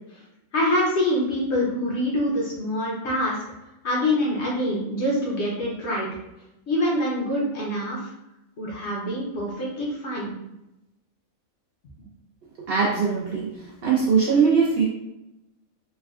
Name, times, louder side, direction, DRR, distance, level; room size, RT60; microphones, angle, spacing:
voice 1, 0.5-3.4 3.8-6.1 6.7-8.1 8.6-10.3, left 1 dB, 60° left, -4 dB, 0.9 m, -25 dB
voice 2, 12.7-13.5 13.8-14.8, right 5 dB, 65° right, -4 dB, 0.6 m, -20 dB
3.3 x 2.2 x 2.3 m, 0.90 s
omnidirectional pair, 1.4 m